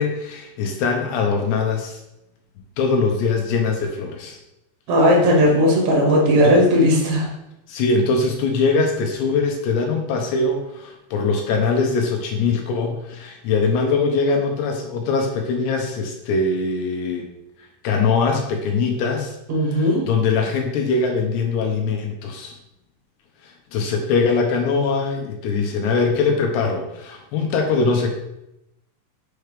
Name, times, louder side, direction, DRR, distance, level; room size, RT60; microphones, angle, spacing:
voice 1, 0.0-2.0 2.8-4.4 6.4-6.6 7.7-17.3 17.6-19.4 19.7-22.5 23.4-28.1, left 4 dB, 75° left, 2 dB, 2.8 m, -22 dB
voice 2, 4.9-7.3 19.5-20.1, equal, 50° right, -2 dB, 2.4 m, -16 dB
6.7 x 6.3 x 3.3 m, 0.87 s
omnidirectional pair, 5.2 m